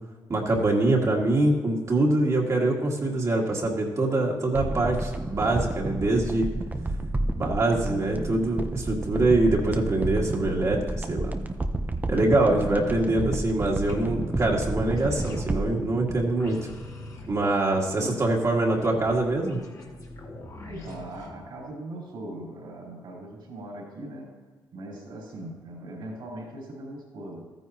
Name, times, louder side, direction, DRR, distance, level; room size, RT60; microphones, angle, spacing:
voice 1, 0.3-6.5 7.3-11.3 12.1-16.6 17.3-19.6, right 2 dB, 40° right, -2 dB, 1.9 m, -24 dB
sound 1, 4.5-17.0 17.3-17.4, right 2 dB, 20° right, 0.7 m, -30 dB
voice 2, 12.5-13.2 17.7-18.1 20.7-24.4 24.7-27.5, right 1 dB, 75° right, -3 dB, 3.7 m, -40 dB
sound 2, 13.9-21.3, left 2 dB, 45° left, 2.0 m, -42 dB
14.0 x 9.3 x 2.9 m, 1.4 s
cardioid pair, 90°, 8 cm